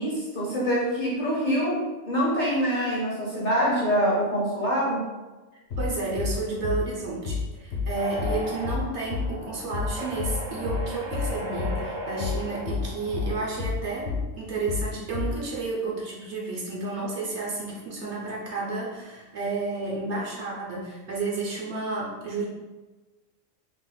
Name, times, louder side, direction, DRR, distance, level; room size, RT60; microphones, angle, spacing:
voice 1, 0.0-5.1, equal, 45° left, -5 dB, 0.7 m, -25 dB
sound 1, 5.7-5.9 6.2-6.4 6.6-6.8 7.3-7.5 7.7-7.9 8.2-8.4 8.6-8.8 9.1-9.3 9.7-9.9 10.2-10.4 10.7-10.9 11.1-11.3 11.6-11.8 12.2-12.4 12.7-12.9 13.1-13.3 13.6-13.8 14.1-14.3 14.7-14.9 15.1-15.3, left 5 dB, 65° left, 1.0 m, -29 dB
voice 2, 5.8-22.4, right 3 dB, 60° right, -4 dB, 1.1 m, -31 dB
sound 2, 7.9-13.5, equal, 40° right, 0.5 m, -37 dB
2.9 x 2.4 x 3.9 m, 1.2 s
omnidirectional pair, 1.3 m